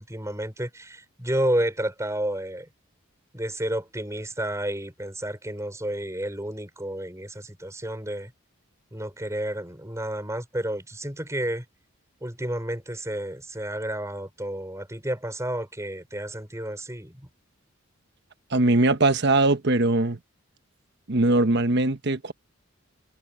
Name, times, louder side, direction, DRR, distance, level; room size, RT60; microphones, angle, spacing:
voice 1, 0.0-2.7 3.3-8.3 8.9-11.6 12.2-17.3, right 1 dB, 15° right, 5.1 m, -31 dB
voice 2, 18.5-20.2 21.1-22.3, right 2 dB, 55° right, 1.1 m, -21 dB
head